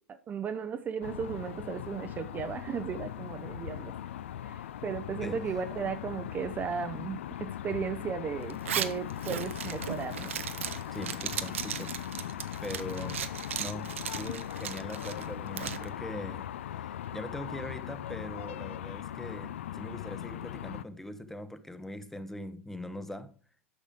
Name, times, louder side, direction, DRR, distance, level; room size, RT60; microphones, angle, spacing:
voice 1, 0.1-3.9 4.4-10.3, right 6 dB, 25° right, 0.6 m, -35 dB
sound 1, 1.0-20.8, left 11 dB, 65° left, 0.4 m, -39 dB
Zipper (clothing), 8.5-15.9, right 9 dB, 65° right, 0.7 m, -37 dB
voice 2, 10.9-12.0 12.6-13.3 13.6-23.3, left 1 dB, 5° left, 0.8 m, -41 dB
11.0 x 6.4 x 3.7 m
figure-of-eight pair, 85°, 7 cm